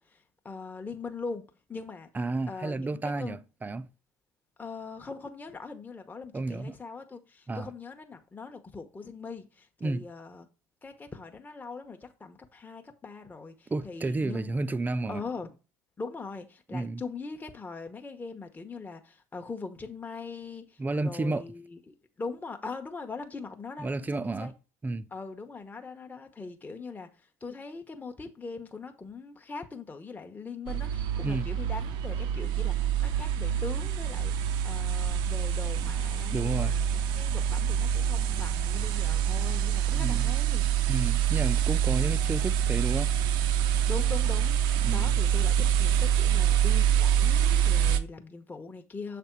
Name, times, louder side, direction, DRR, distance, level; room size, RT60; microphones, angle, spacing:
voice 1, 0.0-2.1 2.5-3.4 4.6-10.5 10.8-14.5 15.1-15.5 16.0-24.5 25.1-40.6 43.9-49.2, left 4 dB, 20° left, 0.9 m, -41 dB
voice 2, 2.1-3.9 6.3-6.8 7.5-7.7 9.8-10.1 13.7-15.2 16.7-17.0 20.8-21.4 23.8-24.5 24.8-25.1 31.2-31.5 36.3-36.8 39.9-40.3 40.9-43.1 44.8-45.1, right 2 dB, 20° right, 0.5 m, -31 dB
sound 1, 30.7-48.0, right 9 dB, 65° right, 0.6 m, -26 dB
7.2 x 3.4 x 4.5 m
hypercardioid pair, 65°, 9 cm